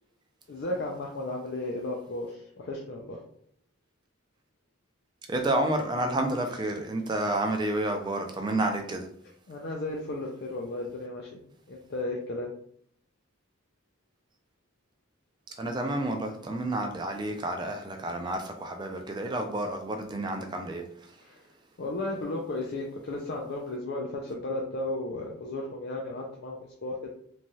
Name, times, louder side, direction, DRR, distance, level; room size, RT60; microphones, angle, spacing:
voice 1, 0.5-3.2 6.5-6.6 9.5-11.4 11.7-12.5 21.2-21.5 21.8-27.1, left 2 dB, 50° left, 0.4 m, -34 dB
voice 2, 5.3-9.1 15.6-20.8, right 1 dB, 20° right, 0.4 m, -30 dB
3.0 x 2.3 x 2.6 m
head